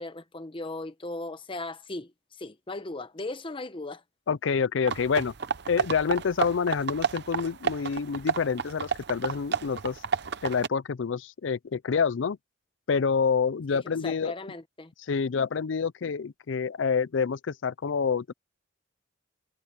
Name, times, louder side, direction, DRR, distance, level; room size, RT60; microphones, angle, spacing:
voice 1, 0.0-4.0 13.7-14.9, left 2 dB, 30° left, 1.0 m, -38 dB
voice 2, 4.3-5.3 5.7-10.0 10.4-12.4 12.9-14.3 15.1-18.3, left 6 dB, 80° left, 0.5 m, -27 dB
sound 1, 4.9-10.7, right 5 dB, 60° right, 0.8 m, -31 dB
head